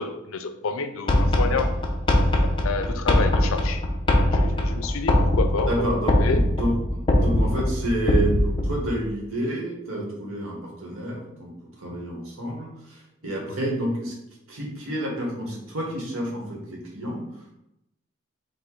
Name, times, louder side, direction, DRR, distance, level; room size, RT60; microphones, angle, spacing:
voice 1, 0.0-1.8 2.6-3.8 4.2-5.9 6.2-6.4 13.5-13.6, left 4 dB, 75° left, 8 dB, 0.4 m, -29 dB
sound 1, 1.1-8.9, left 1 dB, 25° left, 0.5 m, -22 dB
voice 2, 5.7-11.5 11.8-14.1 14.5-17.5, right 1 dB, 80° right, -2 dB, 1.4 m, -29 dB
4.7 x 2.5 x 3.8 m, 0.85 s
head